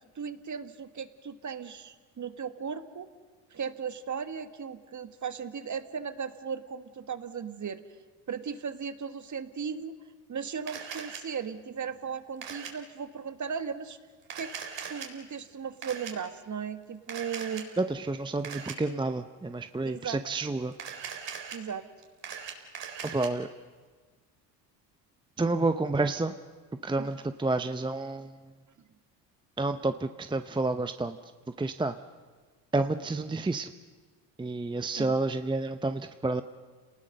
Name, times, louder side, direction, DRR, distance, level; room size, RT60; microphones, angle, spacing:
voice 1, 0.0-3.1 3.5-7.8 8.3-9.9 10.3-14.0 14.3-14.5 14.9-17.7 19.8-20.2 21.5-21.9 27.0-27.1 35.0-35.1, right 6 dB, 35° right, 10 dB, 1.7 m, -36 dB
Camera, 10.7-11.2 12.4-12.7 14.2-15.1 15.8-16.1 17.1-17.6 18.4-18.7 20.7-21.6 22.0-23.3, right 7 dB, 55° right, 4.2 m, -39 dB
voice 2, 17.8-20.7 23.0-23.5 25.4-26.3 26.8-28.3 29.6-31.2 31.6-32.0 32.7-33.7 34.4-36.4, right 2 dB, 10° right, 9 dB, 0.8 m, -29 dB
29.5 x 19.5 x 6.7 m, 1.4 s
supercardioid pair, 70°, 50 cm